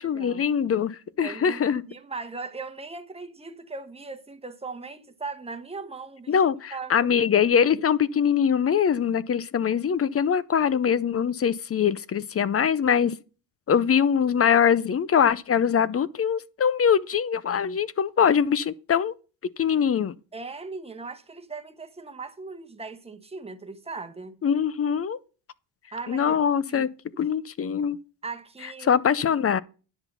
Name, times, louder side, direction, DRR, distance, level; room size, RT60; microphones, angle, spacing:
voice 1, 0.0-1.8 6.3-13.2 13.7-19.1 19.6-20.1 24.4-25.2 26.1-26.9 27.2-28.0 28.8-29.6, left 7 dB, 30° left, 0.6 m, -23 dB
voice 2, 1.2-6.3 6.7-7.0 20.3-24.4 25.9-26.4 26.7-27.2 28.2-28.9, right 4 dB, 15° right, 1.1 m, -38 dB
10.5 x 6.0 x 5.5 m
cardioid pair, 110°, 45 cm